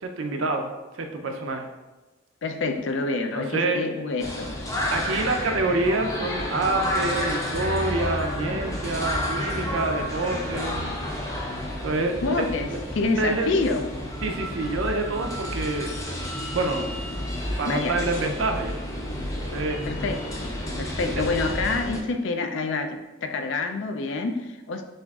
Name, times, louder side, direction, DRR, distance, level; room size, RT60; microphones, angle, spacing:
voice 1, 0.0-1.7 3.3-3.8 4.9-10.9 11.8-12.4 13.2-13.5 14.2-16.2 16.5-16.9 17.6-18.8 19.4-19.8 21.0-21.2, right 2 dB, 80° right, 4 dB, 0.5 m, -27 dB
voice 2, 2.4-4.8 12.2-13.8 17.7-18.1 19.9-24.8, left 3 dB, 65° left, 6 dB, 0.4 m, -27 dB
sound 1, 4.2-22.0, left 1 dB, 15° left, 0.5 m, -30 dB
7.4 x 2.5 x 2.3 m, 1.1 s
head